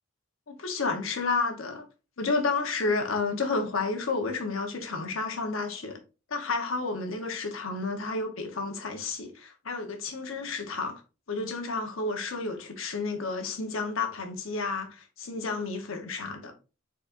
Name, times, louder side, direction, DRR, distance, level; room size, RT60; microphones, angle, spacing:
voice 1, 0.5-1.9 2.2-6.0 6.3-11.0 11.3-16.5, left 3 dB, 80° left, 1.0 m, -31 dB
4.5 x 4.2 x 2.5 m
head